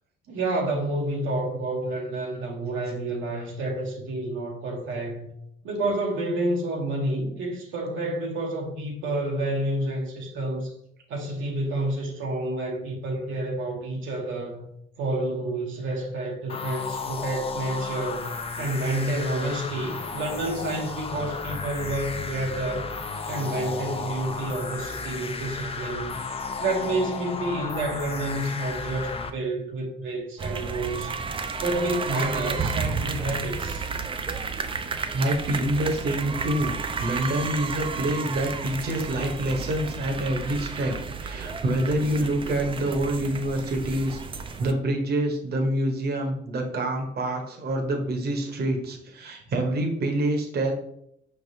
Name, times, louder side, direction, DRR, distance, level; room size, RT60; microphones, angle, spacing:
voice 1, 0.3-5.3 5.6-10.7 11.1-14.6 15.0-18.3 18.6-22.9 23.3-26.2 26.6-31.2 31.6-33.9, right 1 dB, 80° right, 0.9 m, -29 dB
sound 1, 16.5-29.3, left 4 dB, 30° left, 0.5 m, -34 dB
sound 2, 30.4-44.7, right 5 dB, 25° right, 0.4 m, -32 dB
voice 2, 35.1-44.2 44.6-50.7, right 1 dB, 55° right, 1.0 m, -26 dB
5.3 x 3.4 x 2.7 m
cardioid pair, 90°, 20 cm